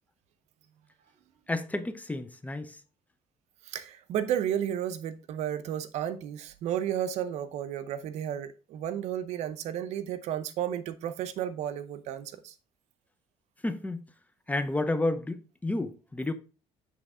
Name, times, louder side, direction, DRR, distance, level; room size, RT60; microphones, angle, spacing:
voice 1, 1.5-2.8 13.6-14.0 14.5-16.3, left 2 dB, 15° left, 0.6 m, -31 dB
voice 2, 3.6-12.5, right 10 dB, 75° right, 0.6 m, -33 dB
7.6 x 3.5 x 3.6 m
cardioid pair, 90°, 12 cm